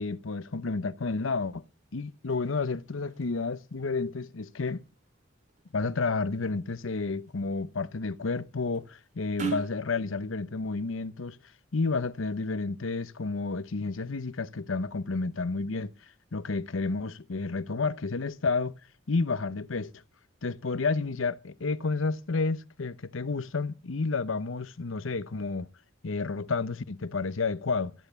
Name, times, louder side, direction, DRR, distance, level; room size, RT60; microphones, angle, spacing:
voice 1, 0.0-1.6 1.9-4.8 5.7-11.4 11.7-15.9 16.3-18.7 19.1-19.9 20.4-25.7 26.0-27.9, left 4 dB, 85° left, 0.8 m, -30 dB
sound 1, 1.1-9.8, right 7 dB, 35° right, 2.8 m, -45 dB
14.0 x 9.0 x 8.2 m
head